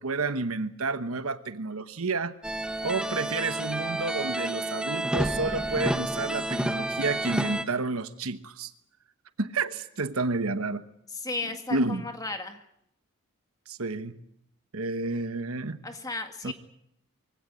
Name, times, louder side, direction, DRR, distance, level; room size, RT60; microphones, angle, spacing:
voice 1, 0.0-2.4 2.8-8.7 9.4-10.8 11.7-12.1 13.7-14.2 14.7-15.8 16.4-16.5, right 3 dB, 80° right, 11 dB, 1.1 m, -30 dB
sound 1, 2.4-7.6, right 1 dB, 5° right, 0.9 m, -30 dB
voice 2, 11.1-12.6 15.8-16.5, left 3 dB, 15° left, 6 dB, 2.0 m, -35 dB
23.5 x 16.5 x 8.9 m, 0.77 s
head